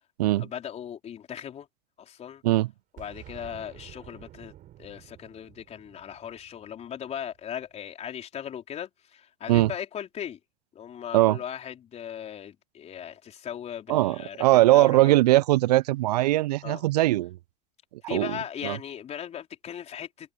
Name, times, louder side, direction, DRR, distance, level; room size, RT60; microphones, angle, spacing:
voice 1, 0.4-1.7 2.0-2.4 2.9-4.5 4.8-10.4 10.7-15.1 16.6-16.8 18.1-20.3, left 9 dB, 35° left, 4.2 m, -38 dB
Boom, 3.0-7.6, right 13 dB, 45° right, 7.9 m, -50 dB
voice 2, 13.9-17.4 18.1-18.4 18.6-18.8, right 17 dB, 85° right, 0.4 m, -21 dB
hypercardioid pair, 105°, 20 cm